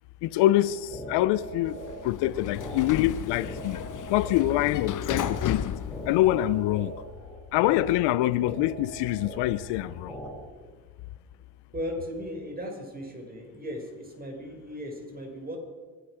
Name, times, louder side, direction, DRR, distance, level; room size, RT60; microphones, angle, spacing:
voice 1, 0.2-1.8 2.0-3.8 4.1-5.7 6.1-6.9 7.5-10.1, left 15 dB, 75° left, 0.8 m, -25 dB
sound 1, 0.5-10.3, equal, ahead, 6.8 m, -42 dB
Sliding door, 1.7-6.9, left 10 dB, 50° left, 1.0 m, -34 dB
voice 2, 11.7-15.6, equal, 20° right, 5.5 m, -37 dB
25.5 x 11.0 x 5.0 m
supercardioid pair, 70°, 41 cm